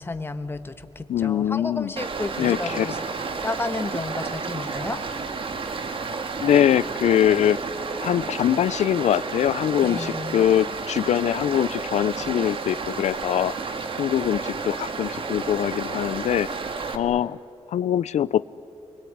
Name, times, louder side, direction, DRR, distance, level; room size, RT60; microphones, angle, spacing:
voice 1, 0.0-3.0 3.4-5.0 9.8-10.5, left 3 dB, 20° left, 9 dB, 1.4 m, -32 dB
voice 2, 1.1-1.9 2.4-2.9 6.4-7.6 8.0-13.5 14.0-16.5 16.9-17.4 17.7-18.4, left 10 dB, 80° left, 17 dB, 0.5 m, -23 dB
Stream, 2.0-17.0, right 4 dB, 50° right, 1.8 m, -31 dB
29.0 x 21.5 x 9.4 m, 2.7 s
wide cardioid pair, 120°, 12 cm